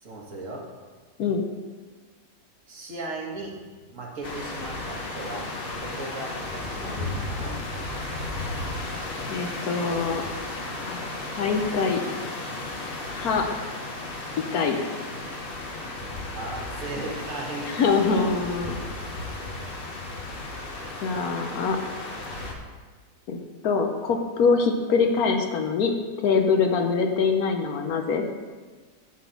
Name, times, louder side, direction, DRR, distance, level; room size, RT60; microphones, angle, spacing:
voice 1, 0.0-0.6 2.7-3.6 3.9-5.4 5.8-7.6 16.3-17.9 18.1-18.4, right 2 dB, 50° right, -2 dB, 1.7 m, -36 dB
sound 1, 4.2-22.5, left 2 dB, 40° left, 1.0 m, -34 dB
voice 2, 9.3-10.2 10.8-12.0 13.1-13.5 14.5-14.8 17.7-18.8 21.0-21.8 23.3-23.4 23.6-25.9 26.2-28.2, left 5 dB, 70° left, 4 dB, 1.2 m, -24 dB
9.8 x 4.1 x 6.9 m, 1.4 s
omnidirectional pair, 1.8 m